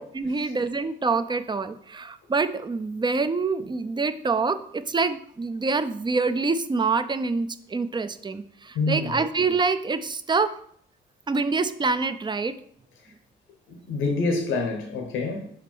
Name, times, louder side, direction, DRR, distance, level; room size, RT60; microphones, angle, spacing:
voice 1, 0.0-10.5 11.3-12.5, right 4 dB, 25° right, 0.5 m, -26 dB
voice 2, 8.7-9.2 13.7-15.5, left 3 dB, 85° left, 1.1 m, -27 dB
5.1 x 5.0 x 4.5 m
cardioid pair, 90°, 20 cm